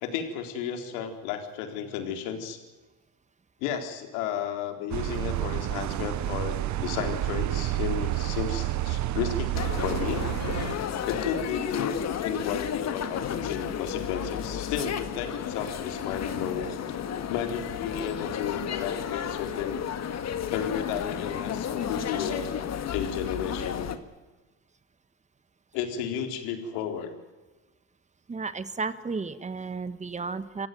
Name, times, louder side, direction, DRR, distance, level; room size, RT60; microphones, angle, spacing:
voice 1, 0.0-2.6 3.6-10.2 11.1-16.7 17.3-19.8 20.5-22.5 22.9-23.9 25.7-27.1, left 8 dB, 80° left, 6 dB, 4.1 m, -33 dB
sound 1, 4.9-10.8, right 14 dB, 40° right, 1.0 m, -29 dB
sound 2, 9.5-24.0, left 8 dB, 35° left, 1.9 m, -32 dB
voice 2, 28.3-30.7, right 4 dB, 15° right, 13 dB, 1.4 m, -33 dB
28.0 x 15.5 x 9.3 m, 1.2 s
cardioid pair, 130°, 44 cm